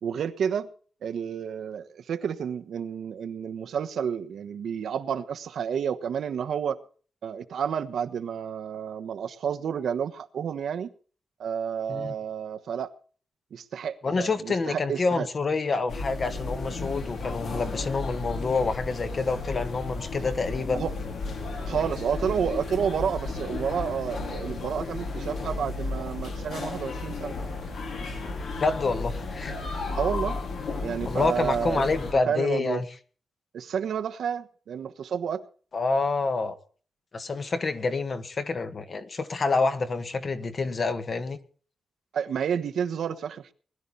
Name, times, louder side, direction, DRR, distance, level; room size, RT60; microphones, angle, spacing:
voice 1, 0.0-0.7 1.0-6.8 7.2-10.9 11.4-12.9 13.5-15.3 20.2-20.3 20.7-20.9 21.6-27.3 29.9-30.4 30.8-31.8 32.3-32.8 33.5-35.4 42.1-43.5, right 7 dB, 80° right, 1.2 m, -30 dB
voice 2, 14.0-20.8 28.6-29.5 31.0-32.8 35.7-36.5 37.1-41.4, left 3 dB, 35° left, 1.5 m, -27 dB
sound 1, 15.9-32.1, left 3 dB, 75° left, 4.4 m, -33 dB
20.5 x 12.0 x 4.1 m
wide cardioid pair, 180°, 0 cm